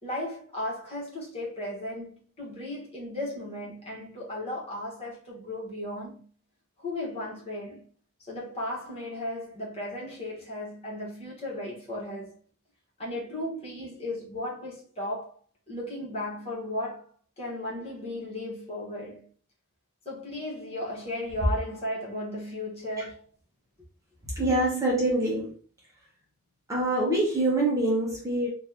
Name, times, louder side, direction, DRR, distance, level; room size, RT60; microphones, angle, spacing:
voice 1, 0.0-6.2 6.8-7.8 8.2-12.4 13.0-15.4 15.7-17.1 17.4-19.3 20.0-23.2, left 1 dB, 25° left, 1.3 m, -35 dB
voice 2, 24.2-25.6 26.7-28.5, right 1 dB, 15° right, 0.8 m, -25 dB
3.0 x 2.6 x 3.7 m
head